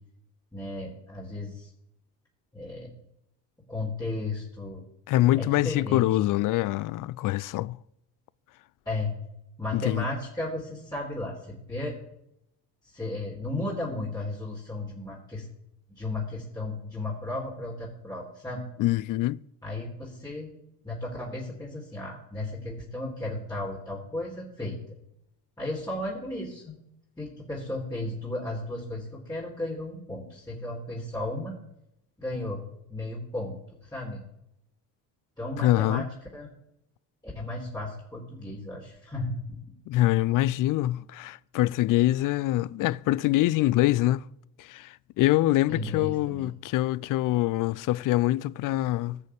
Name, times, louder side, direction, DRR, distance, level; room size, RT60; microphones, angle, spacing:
voice 1, 0.5-1.7 2.5-2.9 3.7-4.8 5.3-6.1 8.9-9.1 9.6-11.9 12.8-15.5 16.0-18.6 19.6-20.5 20.8-24.8 25.6-26.8 27.2-31.6 32.2-32.6 32.9-34.2 35.4-36.1 36.3-36.5 37.3-39.4 45.7-46.5, left 2 dB, 10° left, 3.9 m, -34 dB
voice 2, 5.1-7.8 9.7-10.0 18.8-19.4 35.6-36.0 39.9-44.2 44.6-49.2, left 16 dB, 40° left, 0.5 m, -24 dB
16.0 x 6.4 x 7.1 m
figure-of-eight pair, 55°, 49 cm